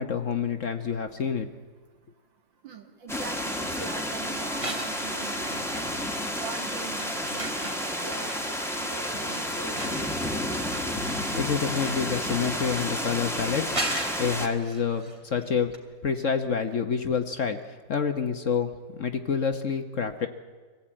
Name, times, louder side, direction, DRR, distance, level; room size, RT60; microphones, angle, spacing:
voice 1, 0.0-1.5 11.3-13.8 14.2-15.7 16.0-18.7 19.0-20.3, left 6 dB, 50° left, 7 dB, 1.1 m, -28 dB
voice 2, 2.6-10.2, right 5 dB, 80° right, 5 dB, 2.6 m, -42 dB
sound 1, 3.1-14.5, equal, ahead, 1.5 m, -31 dB
sound 2, 4.6-6.1 6.4-15.5 15.7-15.8, right 1 dB, 15° right, 2.7 m, -39 dB
24.5 x 16.5 x 8.8 m, 1.5 s
omnidirectional pair, 2.0 m